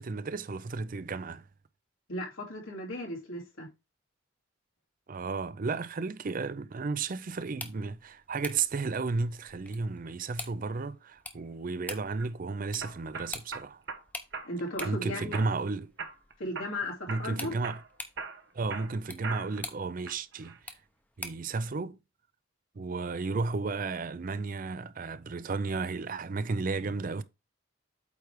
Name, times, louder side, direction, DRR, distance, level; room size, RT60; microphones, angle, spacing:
voice 1, 0.0-1.4 5.1-13.8 14.8-15.9 17.1-17.8 18.5-20.6 21.2-22.0 22.8-27.2, right 4 dB, 45° right, 0.5 m, -33 dB
voice 2, 2.1-3.7 14.4-15.4 16.4-17.5, left 1 dB, 90° left, 2.5 m, -36 dB
sound 1, 7.4-21.5, left 2 dB, 10° left, 0.7 m, -47 dB
sound 2, 11.9-12.3 12.8-14.0 14.3-15.0 15.3-15.7 16.0-16.8 17.1-17.3 17.6-19.7 20.1-20.6, right 4 dB, 60° right, 1.1 m, -40 dB
8.3 x 3.4 x 4.6 m
head